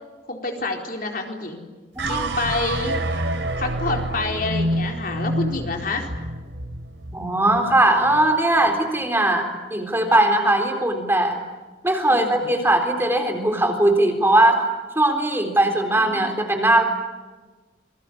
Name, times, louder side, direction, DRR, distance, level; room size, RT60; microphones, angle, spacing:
voice 1, 0.3-1.6 2.1-3.2 3.6-6.1 12.1-12.6 15.9-16.3, left 3 dB, 50° left, 2 dB, 4.3 m, -28 dB
sound 1, 2.0-8.4, right 1 dB, 85° right, 3.2 m, -28 dB
voice 2, 7.1-11.4 11.8-14.7 15.0-16.8, right 1 dB, 15° right, 4 dB, 3.9 m, -19 dB
27.5 x 22.0 x 9.9 m, 1.3 s
head